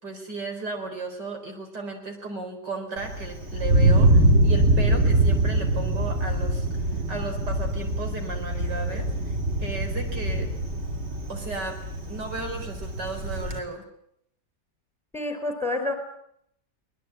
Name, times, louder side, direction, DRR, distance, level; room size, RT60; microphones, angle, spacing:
voice 1, 0.0-10.5 11.3-11.8 12.1-13.8, right 3 dB, 80° right, 4 dB, 4.8 m, -35 dB
Thunder, 3.0-13.6, right 1 dB, 40° right, 2.9 m, -23 dB
voice 2, 15.1-15.9, left 2 dB, ahead, 6 dB, 4.4 m, -28 dB
24.0 x 20.0 x 8.7 m, 0.74 s
omnidirectional pair, 1.8 m